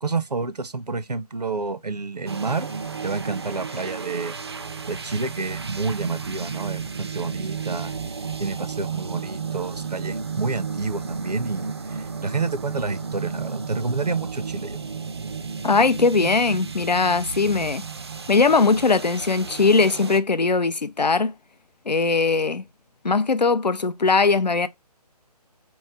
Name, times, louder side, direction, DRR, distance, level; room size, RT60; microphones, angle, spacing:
voice 1, 0.0-2.7 3.0-4.4 4.9-7.9 8.4-14.8, right 4 dB, 75° right, 0.7 m, -29 dB
sound 1, 2.3-20.2, right 5 dB, 40° right, 0.4 m, -33 dB
voice 2, 15.6-17.9 18.3-21.3 21.9-22.6 23.0-24.7, left 4 dB, 85° left, 0.5 m, -20 dB
4.3 x 3.1 x 3.4 m
figure-of-eight pair, 150°, 21 cm